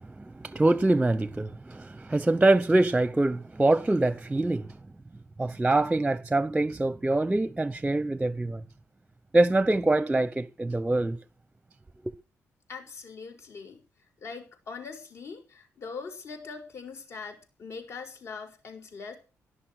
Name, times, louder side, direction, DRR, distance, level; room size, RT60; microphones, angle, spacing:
voice 1, 0.4-4.7 5.4-8.6 9.3-11.2, right 2 dB, 15° right, 0.7 m, -24 dB
voice 2, 12.7-13.8 14.2-19.2, left 5 dB, 60° left, 5.9 m, -41 dB
17.5 x 11.5 x 6.4 m
wide cardioid pair, 145°, 5 cm